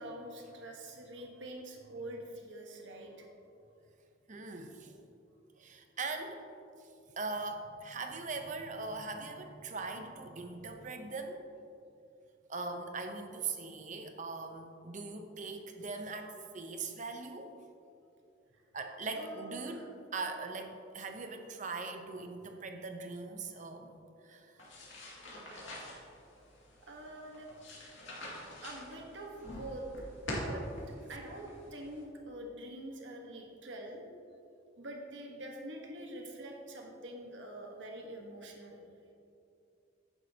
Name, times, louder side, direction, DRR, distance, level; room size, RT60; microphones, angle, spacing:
voice 1, 0.0-3.3 19.1-19.8 24.3-24.4 24.8-24.9 25.3-25.4 25.8-25.9 26.3-26.5 26.8-27.5 28.6-30.6 31.1-34.1 34.8-38.8, right 1 dB, 75° right, 1 dB, 1.3 m, -45 dB
voice 2, 4.3-4.9 5.6-6.5 6.8-6.9 7.2-11.4 12.5-17.5 18.7-23.9 24.2-24.6 25.5-25.7, right 3 dB, 40° right, 5 dB, 0.8 m, -41 dB
sound 1, 24.6-32.0, equal, 85° left, 2.2 m, -45 dB
10.5 x 9.8 x 2.9 m, 2.5 s
head